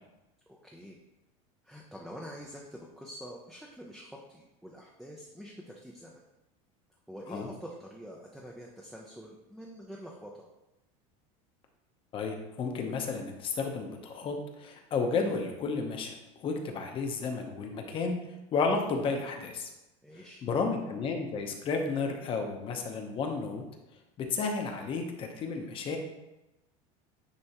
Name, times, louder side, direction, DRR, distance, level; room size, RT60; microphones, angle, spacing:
voice 1, 0.5-1.0 1.6-6.2 7.1-10.3 20.0-20.5, equal, ahead, -2 dB, 0.5 m, -46 dB
voice 2, 12.1-16.1 16.4-18.2 18.5-19.7 20.4-23.6 24.2-26.0, left 4 dB, 30° left, 3 dB, 0.8 m, -32 dB
9.7 x 3.4 x 2.9 m, 0.97 s
supercardioid pair, 150°, 17 cm